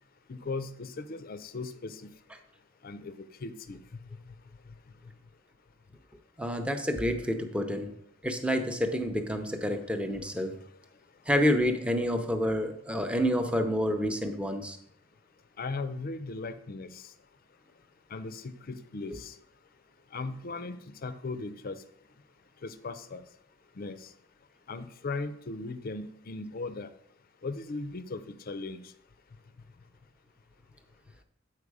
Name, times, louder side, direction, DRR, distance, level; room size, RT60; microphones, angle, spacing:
voice 1, 0.3-2.1 2.8-3.8 15.6-17.1 18.1-19.3 20.1-21.8 22.6-23.2 23.8-24.1 24.7-26.9 27.4-28.8, left 3 dB, 50° left, 12 dB, 0.5 m, -38 dB
voice 2, 6.4-7.9 8.2-10.5 11.3-14.8, equal, 5° right, 6 dB, 0.7 m, -28 dB
8.3 x 4.6 x 4.8 m, 0.71 s
head